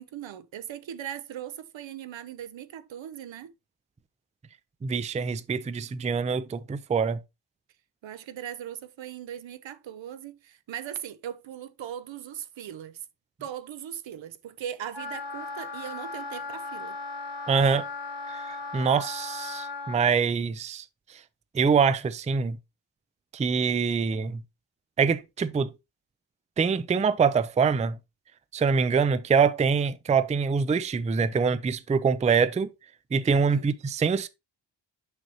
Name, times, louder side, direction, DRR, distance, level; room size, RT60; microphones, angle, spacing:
voice 1, 0.0-3.5 8.0-13.0 13.4-17.0 33.5-33.7, right 10 dB, 80° right, 0.7 m, -39 dB
voice 2, 4.8-7.2 17.5-17.9 18.3-20.8 21.5-22.6 23.3-24.4 25.0-25.7 26.6-28.0 28.5-32.7 33.1-34.3, right 5 dB, 20° right, 0.3 m, -24 dB
Wind instrument woodwind instrument, 14.9-20.1, left 3 dB, 65° left, 1.4 m, -37 dB
6.5 x 6.1 x 2.9 m
wide cardioid pair, 135°, 45 cm